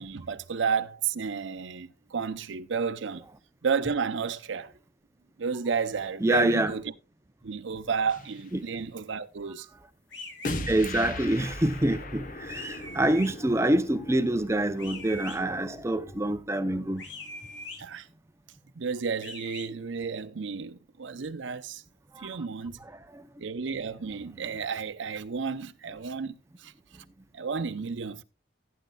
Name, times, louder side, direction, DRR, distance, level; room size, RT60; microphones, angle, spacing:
voice 1, 0.0-3.2 3.6-4.7 5.4-6.8 7.4-9.7 17.8-18.1 18.8-21.8 22.2-22.8 23.4-26.4 26.6-26.7 27.3-28.2, right 5 dB, 75° right, 0.6 m, -32 dB
voice 2, 6.2-6.7 8.5-8.7 10.7-17.0 22.1-22.4 22.8-23.2, right 1 dB, 15° right, 0.5 m, -26 dB
sound 1, 8.1-8.4 10.4-16.4, left 2 dB, 45° left, 1.0 m, -39 dB
sound 2, 10.1-10.6 12.5-13.3 14.8-15.4 17.0-17.8 19.2-19.7, left 2 dB, 70° left, 2.3 m, -42 dB
15.5 x 9.3 x 2.3 m
head